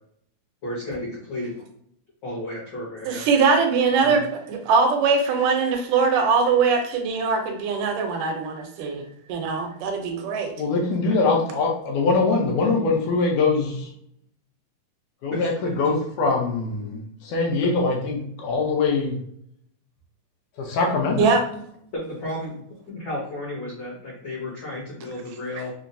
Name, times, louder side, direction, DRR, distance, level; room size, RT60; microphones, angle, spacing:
voice 1, 0.6-1.5 2.2-3.3 4.0-4.2 11.0-11.2 15.3-15.7 21.9-25.7, left 1 dB, 60° left, -8 dB, 1.1 m, -33 dB
voice 2, 3.1-10.5 21.2-21.4, right 5 dB, 80° right, 3 dB, 2.2 m, -22 dB
voice 3, 10.6-13.9 15.2-19.2 20.6-21.4, left 3 dB, 75° left, -1 dB, 2.1 m, -23 dB
5.8 x 2.1 x 2.6 m, 0.69 s
omnidirectional pair, 3.8 m